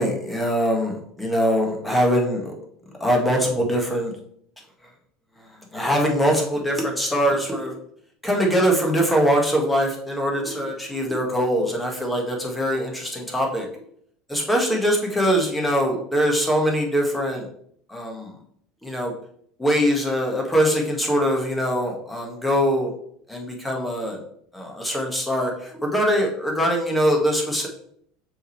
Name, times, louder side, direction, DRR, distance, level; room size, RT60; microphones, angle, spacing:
voice 1, 0.0-2.5 3.0-4.2 4.8-4.9 5.4-7.7 8.2-13.7 14.3-17.5 17.9-18.4 18.8-19.1 19.6-23.0 23.3-24.2 24.5-27.7, equal, 5° left, 0 dB, 1.8 m, -22 dB
6.4 x 4.9 x 3.3 m, 0.65 s
supercardioid pair, 105°, 0 cm